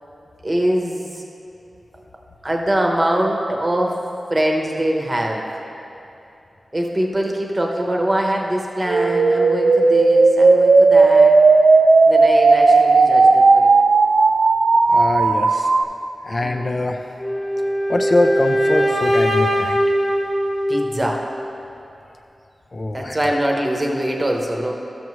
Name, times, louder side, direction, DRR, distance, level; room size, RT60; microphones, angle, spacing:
voice 1, 0.4-1.2 2.4-4.0 4.3-5.5 6.7-11.4 12.1-13.7 16.4-16.7 20.7-21.2 22.9-24.8, right 1 dB, 25° right, 1 dB, 0.9 m, -23 dB
sound 1, 8.9-15.8, right 3 dB, 60° right, 0.3 m, -13 dB
voice 2, 14.9-15.7 16.2-17.0 17.9-19.8 22.7-23.2, left 2 dB, 40° left, 4 dB, 0.4 m, -22 dB
sound 2, 17.2-21.2, equal, 15° left, 1.2 m, -20 dB
12.5 x 6.0 x 3.1 m, 2.7 s
wide cardioid pair, 120°, 0 cm